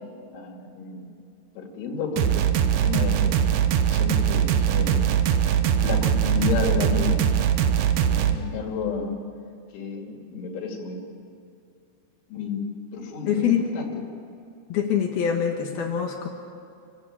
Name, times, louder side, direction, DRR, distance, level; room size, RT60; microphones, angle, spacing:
voice 1, 0.3-1.2 1.6-3.4 3.9-7.5 8.0-9.2 9.7-11.0 12.3-12.7 12.9-13.9, left 5 dB, 80° left, 2 dB, 4.9 m, -31 dB
sound 1, 2.2-8.4, right 9 dB, 75° right, 2.3 m, -21 dB
voice 2, 13.3-13.7 14.7-16.3, left 8 dB, 65° left, 3 dB, 2.9 m, -24 dB
28.0 x 14.0 x 8.7 m, 2.4 s
omnidirectional pair, 5.4 m